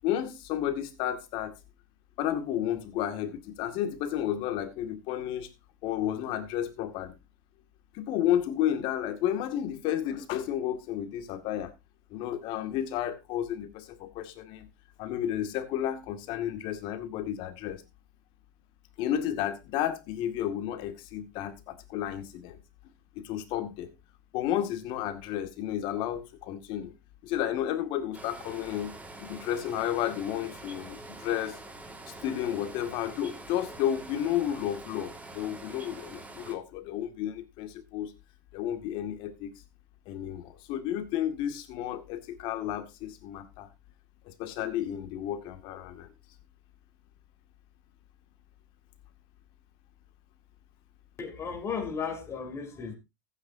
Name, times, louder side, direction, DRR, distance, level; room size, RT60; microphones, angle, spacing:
voice 1, 0.0-1.5 2.2-5.5 5.8-7.2 7.9-11.7 12.1-14.7 15.0-17.8 19.0-22.6 23.2-23.9 24.3-26.9 27.2-28.9 29.2-31.6 32.1-38.1 38.5-39.5 40.1-43.7 44.3-46.1, left 11 dB, 55° left, 2.1 m, -32 dB
sound 1, 28.1-36.5, right 2 dB, 15° right, 2.0 m, -45 dB
voice 2, 51.2-53.0, left 6 dB, 25° left, 3.6 m, -35 dB
15.5 x 9.2 x 2.8 m
hypercardioid pair, 105°, 10 cm